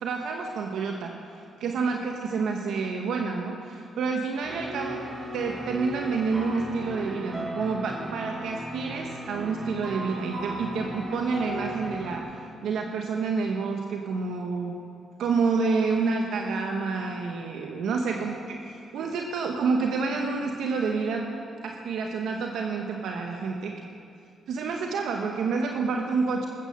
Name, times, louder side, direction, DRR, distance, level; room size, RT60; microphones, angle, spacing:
voice 1, 0.0-5.1 5.3-14.8 15.2-21.3 21.6-23.7 24.5-26.5, right 4 dB, 75° right, 2 dB, 1.1 m, -29 dB
sound 1, 4.4-12.2, right 1 dB, 25° right, 4.4 m, -36 dB
20.0 x 8.8 x 6.7 m, 2.5 s
supercardioid pair, 60°, 0 cm